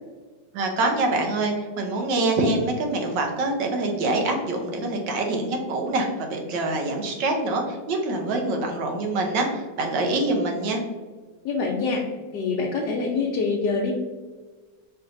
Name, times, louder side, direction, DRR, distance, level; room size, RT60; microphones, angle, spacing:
voice 1, 0.5-10.8, right 2 dB, 90° right, 2 dB, 1.5 m, -25 dB
voice 2, 11.4-12.0 12.3-13.9, left 4 dB, 75° left, -2 dB, 1.3 m, -25 dB
4.4 x 3.9 x 2.5 m, 1.3 s
omnidirectional pair, 1.9 m